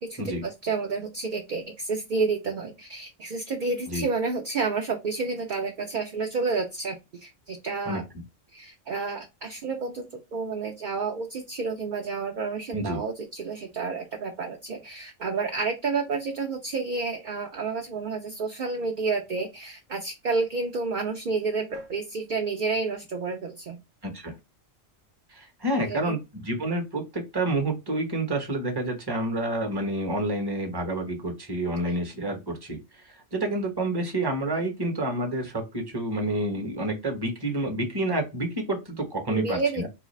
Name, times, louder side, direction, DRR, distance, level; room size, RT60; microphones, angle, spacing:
voice 1, 0.0-8.0 8.5-23.8 25.8-26.2 31.6-32.0 39.3-39.9, right 4 dB, 55° right, 3 dB, 0.5 m, -30 dB
voice 2, 24.0-24.4 25.3-39.9, right 1 dB, 20° right, 3 dB, 0.8 m, -29 dB
3.9 x 2.4 x 3.1 m, 0.24 s
omnidirectional pair, 1.3 m